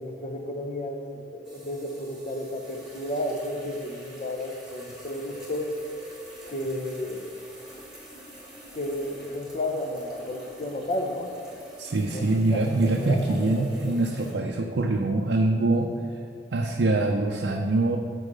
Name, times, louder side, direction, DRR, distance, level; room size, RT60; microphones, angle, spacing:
voice 1, 0.0-5.7 6.5-7.4 8.7-11.3 11.9-14.0 14.2-14.4, left 1 dB, 40° left, 3 dB, 0.8 m, -33 dB
sound 1, 1.4-14.3, equal, 5° right, 1.8 m, -46 dB
voice 2, 11.8-15.9 16.5-18.0, right 2 dB, 90° right, 1 dB, 0.6 m, -24 dB
8.1 x 4.7 x 5.4 m, 2.2 s
head